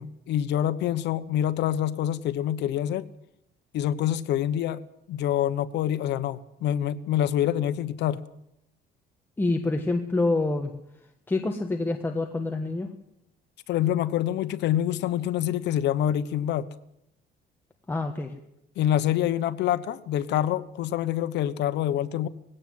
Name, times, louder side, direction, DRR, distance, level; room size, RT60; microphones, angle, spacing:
voice 1, 0.0-3.0 3.7-4.8 5.1-8.2 13.7-16.7 18.8-22.3, left 11 dB, 75° left, 1.1 m, -26 dB
voice 2, 9.4-10.7 11.3-12.9 17.9-18.3, left 2 dB, 10° left, 1.3 m, -26 dB
19.5 x 17.0 x 7.9 m
cardioid pair, 160°, 18 cm